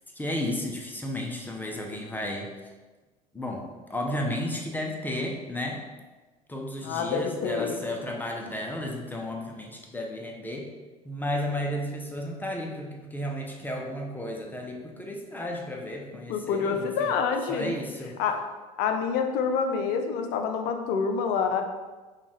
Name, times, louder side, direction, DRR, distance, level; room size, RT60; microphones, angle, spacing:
voice 1, 0.1-2.5 3.3-5.9 6.5-10.7 11.0-17.1 17.5-18.2, left 1 dB, 10° left, 0 dB, 0.6 m, -33 dB
voice 2, 6.8-7.8 16.3-17.7 18.2-18.4 18.8-21.6, left 6 dB, 50° left, 5 dB, 0.6 m, -27 dB
5.2 x 2.4 x 3.1 m, 1.3 s
figure-of-eight pair, 70°, 20 cm